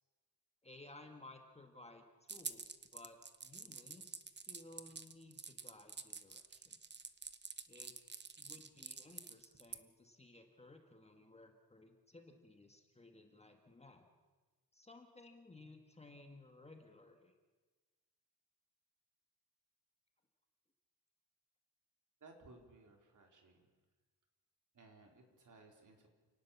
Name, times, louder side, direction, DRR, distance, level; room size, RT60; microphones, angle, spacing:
voice 1, 0.6-6.8 7.7-8.0 8.4-14.1 14.7-17.3, left 2 dB, 15° left, 4 dB, 1.6 m, -58 dB
sound 1, 2.3-9.8, right 5 dB, 25° right, 0.9 m, -48 dB
voice 2, 22.2-23.7 24.7-26.1, right 3 dB, 50° right, 3 dB, 3.9 m, -61 dB
29.0 x 18.5 x 7.2 m, 1.3 s
wide cardioid pair, 175°, 40 cm